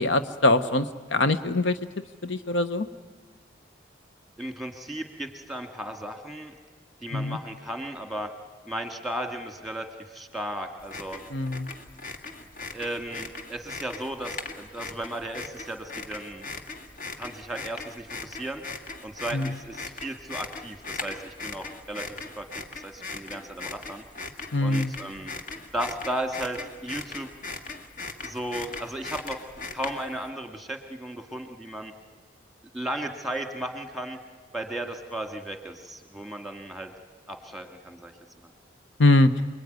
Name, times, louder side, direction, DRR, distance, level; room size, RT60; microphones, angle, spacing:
voice 1, 0.0-1.8 2.2-2.9 7.1-7.4 11.3-11.7 19.3-19.5 24.5-24.9 39.0-39.3, left 2 dB, 70° left, 10 dB, 1.0 m, -22 dB
voice 2, 4.4-6.5 7.0-8.3 8.7-11.2 12.7-16.5 17.2-18.6 19.0-22.5 22.7-24.0 24.6-25.3 25.7-27.3 28.2-29.4 29.7-31.9 32.7-34.2 34.5-36.9 37.3-38.1 38.4-38.5, right 1 dB, ahead, 5 dB, 2.1 m, -35 dB
sound 1, 10.8-30.3, left 4 dB, 45° left, 1.8 m, -39 dB
29.0 x 21.5 x 9.4 m, 1.4 s
head